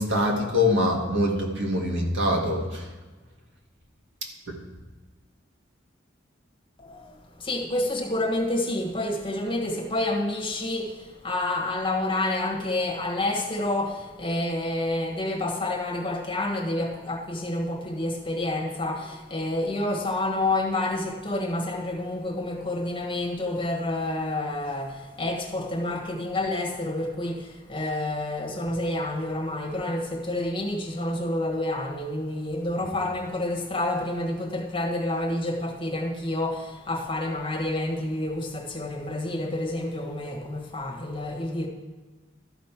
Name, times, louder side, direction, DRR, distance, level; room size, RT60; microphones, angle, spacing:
voice 1, 0.0-2.9 4.5-4.6 32.8-32.9, left 1 dB, 75° right, 0 dB, 1.8 m, -24 dB
voice 2, 6.8-41.7, left 1 dB, 25° left, 1 dB, 1.4 m, -29 dB
13.0 x 5.2 x 5.9 m, 1.3 s
head